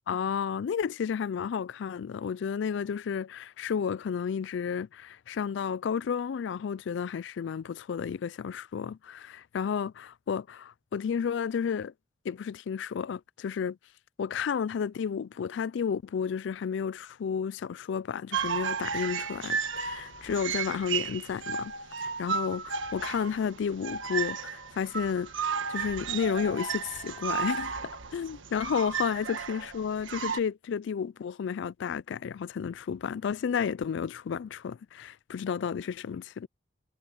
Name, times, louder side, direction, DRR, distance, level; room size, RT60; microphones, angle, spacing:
voice 1, 0.1-11.9 12.2-13.8 14.2-21.7 22.0-36.5, left 7 dB, 65° left, 0.3 m, -32 dB
sound 1, 18.3-30.4, right 6 dB, 80° right, 1.6 m, -34 dB
head